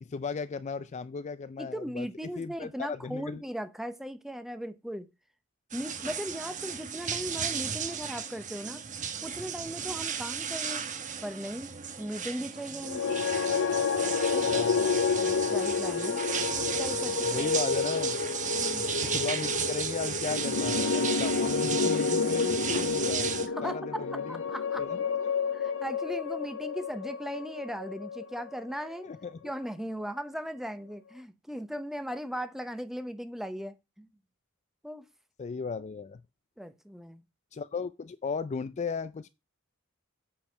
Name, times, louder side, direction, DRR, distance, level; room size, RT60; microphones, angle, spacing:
voice 1, 0.0-2.1 2.4-3.4 14.4-15.0 17.2-18.2 19.0-23.3 23.6-24.4 24.8-25.3 29.0-29.4 35.4-36.2 37.5-39.3, left 5 dB, 35° left, 0.4 m, -36 dB
voice 2, 1.6-5.1 5.7-8.8 9.2-10.8 11.2-13.2 14.3-14.5 15.2-16.2 16.6-17.5 18.5-18.9 23.5-24.8 25.5-29.1 29.4-34.1 34.8-35.0 36.6-37.2, equal, ahead, 0.7 m, -38 dB
sound 1, 5.7-23.5, right 7 dB, 35° right, 1.0 m, -34 dB
sound 2, 12.8-29.1, left 5 dB, 65° left, 0.7 m, -30 dB
8.5 x 4.7 x 5.7 m
head